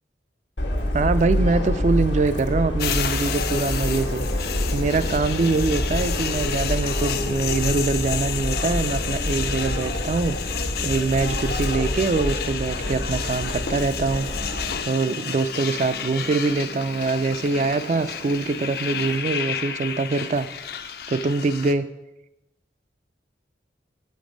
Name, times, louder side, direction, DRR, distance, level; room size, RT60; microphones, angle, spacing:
Subway metro underground, 0.6-14.8, left 1 dB, 85° left, 1.3 m, -27 dB
voice 1, 0.9-4.3 4.7-14.3 14.9-20.5 21.1-21.9, right 3 dB, 40° right, 13 dB, 0.3 m, -24 dB
sound 1, 2.8-21.7, left 8 dB, 60° left, 0.5 m, -32 dB
Engine, 14.0-19.2, right 1 dB, 65° right, 1.0 m, -42 dB
7.6 x 5.2 x 5.1 m, 0.95 s
head